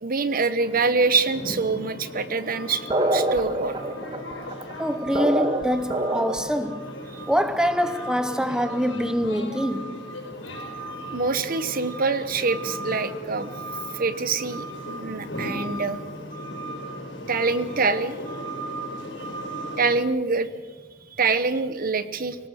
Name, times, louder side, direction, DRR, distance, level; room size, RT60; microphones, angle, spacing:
voice 1, 0.0-3.8 7.1-7.2 11.1-13.5 13.9-16.0 17.3-18.1 19.8-20.5 21.2-22.4, right 4 dB, 50° right, 1.0 m, -25 dB
sound 1, 0.6-20.0, equal, 75° left, 5.0 m, -36 dB
sound 2, 2.9-6.6, right 1 dB, 25° right, 1.3 m, -25 dB
voice 2, 4.8-6.9 7.3-10.0, equal, 5° right, 0.8 m, -25 dB
25.5 x 18.5 x 6.5 m
head